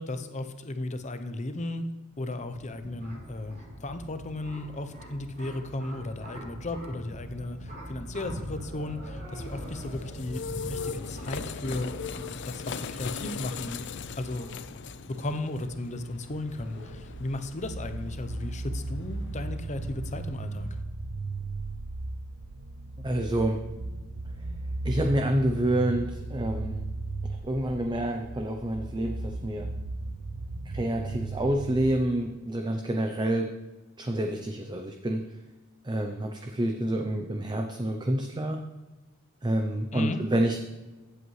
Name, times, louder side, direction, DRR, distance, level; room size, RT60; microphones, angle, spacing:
voice 1, 0.0-1.8 2.2-12.2 12.4-14.5 15.1-20.7 39.9-40.2, left 2 dB, 35° left, 9 dB, 0.8 m, -35 dB
sound 1, 2.1-20.3, equal, 50° right, 3.3 m, -43 dB
sound 2, 9.4-20.8, left 6 dB, 60° left, 0.4 m, -40 dB
sound 3, 15.7-32.0, right 2 dB, 85° right, 0.6 m, -36 dB
voice 2, 23.0-23.6 24.8-26.8 27.4-29.7 30.7-33.5 34.0-35.2 35.8-38.6 39.4-40.7, right 1 dB, 20° right, 4 dB, 0.6 m, -28 dB
15.5 x 8.0 x 3.2 m, 1.2 s
head